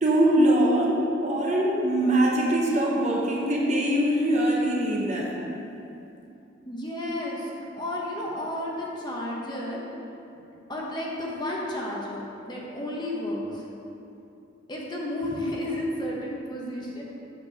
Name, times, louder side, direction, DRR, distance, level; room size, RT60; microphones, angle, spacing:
voice 1, 0.0-5.4, right 1 dB, 40° right, -3 dB, 1.0 m, -22 dB
voice 2, 6.7-9.8 10.3-10.4 10.7-13.6 14.7-17.0, left 1 dB, 25° left, -4 dB, 1.1 m, -32 dB
7.5 x 4.8 x 6.3 m, 2.8 s
head